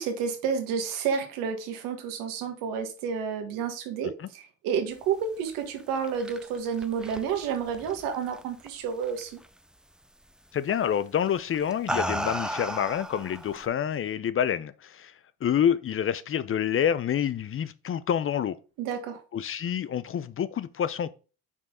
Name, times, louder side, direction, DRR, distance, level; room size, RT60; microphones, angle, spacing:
voice 1, 0.0-9.3 18.8-19.2, right 7 dB, 85° right, 1.6 m, -30 dB
sound 1, 5.8-8.7 9.0-9.5 10.7-10.9 11.5-13.7, equal, ahead, 0.5 m, -34 dB
voice 2, 10.5-15.1 15.4-18.6 19.3-21.1, left 9 dB, 40° left, 0.6 m, -27 dB
5.7 x 4.7 x 3.7 m
supercardioid pair, 70°, 32 cm